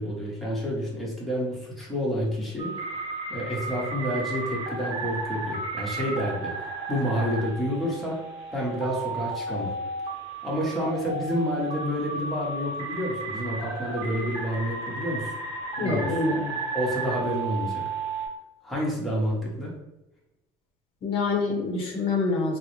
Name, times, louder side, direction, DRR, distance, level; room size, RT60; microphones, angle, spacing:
voice 1, 0.0-2.7 3.3-8.2 8.5-9.7 10.4-15.3 15.8-16.2 16.7-17.8 18.6-19.7, equal, ahead, -5 dB, 0.9 m, -29 dB
sound 1, 2.6-18.3, right 3 dB, 40° right, 1.1 m, -33 dB
voice 2, 15.8-16.5 21.0-22.6, left 3 dB, 45° left, 0 dB, 0.7 m, -26 dB
3.7 x 2.0 x 3.0 m, 0.93 s
cardioid pair, 135°, 13 cm